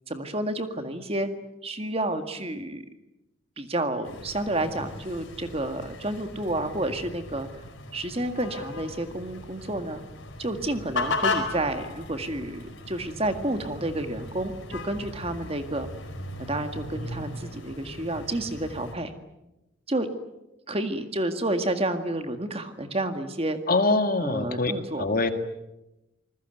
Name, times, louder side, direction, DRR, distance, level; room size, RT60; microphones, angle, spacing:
voice 1, 0.1-1.3 1.6-2.8 3.6-7.5 7.9-10.0 10.4-15.9 16.5-19.1 19.9-20.1 20.7-23.6 24.2-25.0, right 1 dB, 30° right, 8 dB, 1.9 m, -30 dB
sound 1, 4.0-19.0, left 3 dB, 60° left, 4.7 m, -36 dB
voice 2, 23.7-24.7 25.0-25.3, left 2 dB, 40° left, 8 dB, 1.9 m, -23 dB
27.5 x 20.5 x 9.1 m, 0.96 s
head